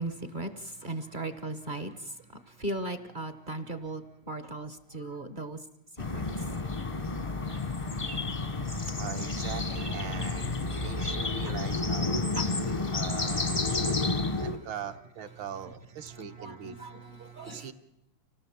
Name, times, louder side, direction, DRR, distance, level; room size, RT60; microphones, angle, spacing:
voice 1, 0.0-2.1 2.5-5.6 6.1-6.3 12.4-12.9 13.8-14.4 16.1-17.7, right 2 dB, 40° right, 11 dB, 0.7 m, -38 dB
sound 1, 6.0-14.6, left 3 dB, 30° left, 0.6 m, -30 dB
voice 2, 9.0-12.2 12.9-13.6 14.4-16.8 17.4-17.7, right 8 dB, 70° right, 7 dB, 1.8 m, -41 dB
25.0 x 17.0 x 7.3 m, 0.92 s
omnidirectional pair, 2.3 m